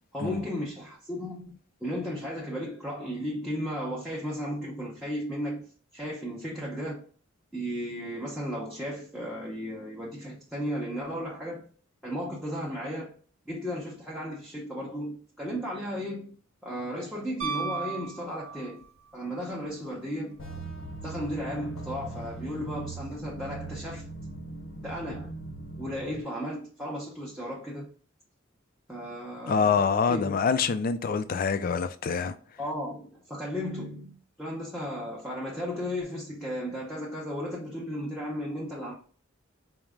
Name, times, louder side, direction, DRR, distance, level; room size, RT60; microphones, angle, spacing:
voice 1, 0.1-5.7 5.9-7.0 7.5-11.7 12.0-13.1 13.5-16.3 16.6-18.8 19.1-20.4 21.0-24.0 24.8-25.3 25.8-27.9 28.9-30.4 32.6-38.9, equal, ahead, 0.7 m, -35 dB
Piano, 17.4-19.0 21.3-21.4, right 6 dB, 70° right, 0.6 m, -35 dB
sound 1, 20.4-26.2, right 2 dB, 70° left, 0.7 m, -40 dB
voice 2, 29.5-32.4, left 5 dB, 45° left, 0.3 m, -26 dB
4.5 x 2.1 x 3.5 m
head